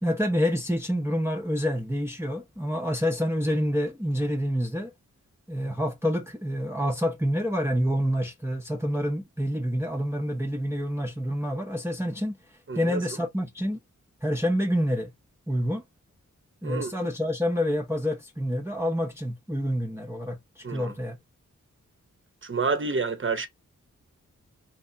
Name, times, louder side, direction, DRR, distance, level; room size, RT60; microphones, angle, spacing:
voice 1, 0.0-4.9 5.5-12.3 12.7-13.8 14.2-15.1 15.5-15.8 16.6-21.2, equal, 10° right, 0.7 m, -27 dB
voice 2, 12.7-13.0 16.6-16.9 20.6-20.9 22.4-23.5, right 4 dB, 40° right, 0.8 m, -28 dB
3.5 x 2.7 x 3.4 m
wide cardioid pair, 70°, 30 cm